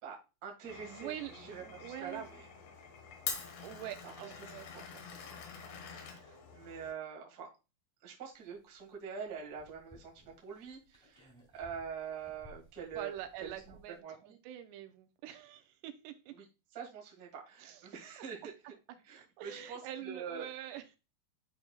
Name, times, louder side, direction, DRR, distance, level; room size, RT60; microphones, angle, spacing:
voice 1, 0.0-2.4 4.0-4.3 4.7-4.8 6.0-7.5 8.0-13.1 13.4-14.4 16.3-16.4 16.7-18.5 19.0-20.5, right 6 dB, 65° right, -2 dB, 0.9 m, -45 dB
Glass, 0.6-6.9, left 6 dB, 75° left, 3.4 m, -46 dB
voice 2, 0.8-2.3 3.6-5.0 13.0-16.3 17.6-17.9 19.4-20.8, right 12 dB, 85° right, 7 dB, 2.8 m, -45 dB
sound 1, 8.4-14.0, equal, ahead, 1.5 m, -60 dB
12.0 x 4.4 x 2.3 m, 0.30 s
omnidirectional pair, 4.9 m